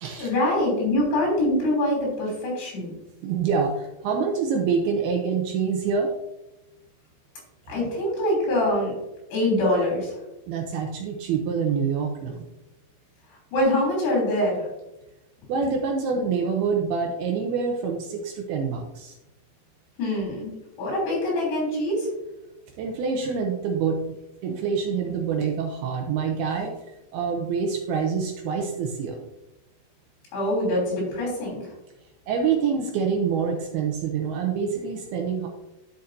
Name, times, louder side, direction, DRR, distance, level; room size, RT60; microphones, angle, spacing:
voice 1, 0.2-2.9 7.7-9.0 9.3-10.2 13.5-14.7 20.0-22.1 30.3-31.7, left 1 dB, 65° left, -2 dB, 5.3 m, -24 dB
voice 2, 3.2-6.1 10.5-12.5 15.5-19.2 22.8-24.0 24.4-26.8 27.1-29.2 32.3-35.5, right 6 dB, 80° right, 2 dB, 2.4 m, -26 dB
11.0 x 6.6 x 2.7 m, 0.94 s
omnidirectional pair, 5.1 m